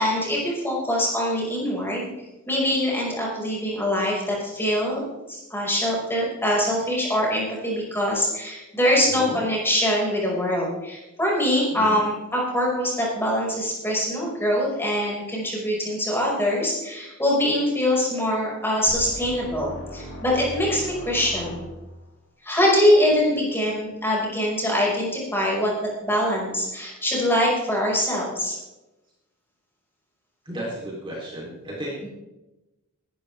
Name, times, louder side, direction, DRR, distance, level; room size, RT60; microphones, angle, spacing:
voice 1, 0.0-2.1 2.5-5.0 5.3-21.6 22.4-28.6, left 1 dB, 10° left, -4 dB, 5.5 m, -23 dB
voice 2, 9.0-9.4 11.7-12.0 30.5-32.1, right 1 dB, 25° right, -4 dB, 3.5 m, -34 dB
sound 1, 18.9-22.1, equal, 60° left, 4.4 m, -38 dB
19.0 x 13.0 x 3.5 m, 1.0 s
head